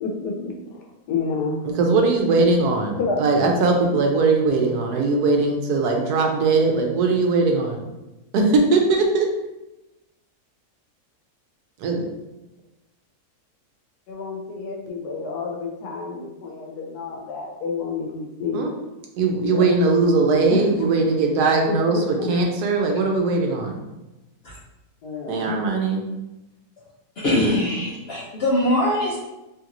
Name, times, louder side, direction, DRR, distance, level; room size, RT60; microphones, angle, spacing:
voice 1, 0.0-1.6 3.0-3.2 14.1-18.7 19.5-19.7 20.5-20.6 21.7-22.4 25.0-25.6, left 4 dB, 85° left, 0 dB, 1.2 m, -29 dB
voice 2, 1.6-7.8 8.3-9.3 11.8-12.1 18.5-18.8 19.2-23.8 25.3-26.1, right 3 dB, 80° right, 2 dB, 1.1 m, -20 dB
voice 3, 27.2-29.2, left 1 dB, 70° left, -5 dB, 0.6 m, -22 dB
3.1 x 2.9 x 2.5 m, 0.99 s
omnidirectional pair, 1.7 m